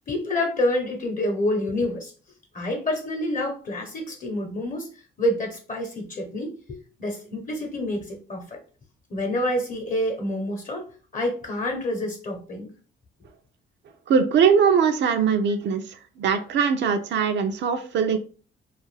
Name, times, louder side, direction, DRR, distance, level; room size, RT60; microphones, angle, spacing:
voice 1, 0.1-2.1 2.5-4.9 5.2-8.6 9.1-10.9 11.1-12.7, left 1 dB, 40° left, 3 dB, 0.8 m, -27 dB
voice 2, 14.1-15.8 16.2-18.2, right 6 dB, 65° right, 7 dB, 0.5 m, -21 dB
2.4 x 2.3 x 3.2 m, 0.38 s
cardioid pair, 90°, 20 cm